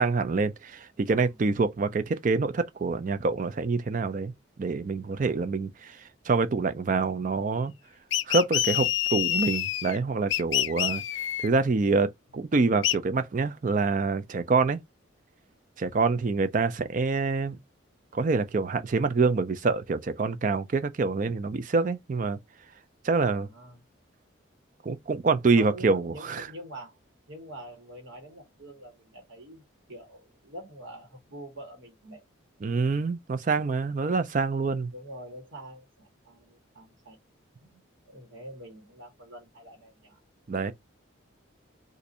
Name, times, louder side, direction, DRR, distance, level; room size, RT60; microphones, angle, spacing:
voice 1, 0.0-4.3 4.6-6.0 6.3-7.7 8.3-11.0 11.4-14.8 15.8-17.6 18.1-22.4 23.0-23.5 24.8-26.5 32.6-34.9 40.5-40.7, right 4 dB, 40° right, 0.4 m, -26 dB
sound 1, 8.1-10.0 10.3-11.5 12.8-13.0, left 13 dB, 65° left, 0.4 m, -27 dB
voice 2, 23.4-23.8 25.6-27.0 27.3-32.2 34.8-37.2 37.6-40.2 40.5-40.7, right 1 dB, 70° right, 1.4 m, -46 dB
2.6 x 2.6 x 4.0 m
head